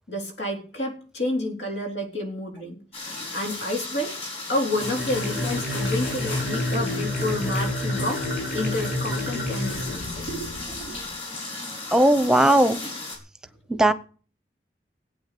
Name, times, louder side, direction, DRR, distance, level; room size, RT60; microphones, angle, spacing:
voice 1, 0.1-2.8 3.3-4.2 4.5-8.2 8.5-11.0 13.7-13.8, left 1 dB, 90° left, 2 dB, 4.0 m, -30 dB
sound 1, 2.9-13.2, left 3 dB, 35° left, 4.9 m, -35 dB
sound 2, 4.7-11.0, left 1 dB, 60° left, 7.7 m, -29 dB
voice 2, 11.9-12.8 13.7-13.9, right 1 dB, 5° right, 11 dB, 0.7 m, -17 dB
17.0 x 8.7 x 6.8 m, 0.41 s
head